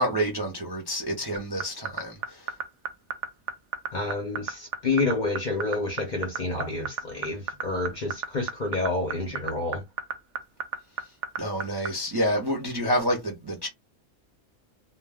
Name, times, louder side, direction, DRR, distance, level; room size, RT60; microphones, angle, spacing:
voice 1, 0.0-2.4 11.4-13.7, equal, 30° right, 0.4 m, -28 dB
sound 1, 1.4-11.9, right 7 dB, 65° right, 0.8 m, -30 dB
voice 2, 3.9-9.8, left 3 dB, 50° left, 0.6 m, -29 dB
2.2 x 2.2 x 3.4 m
omnidirectional pair, 1.4 m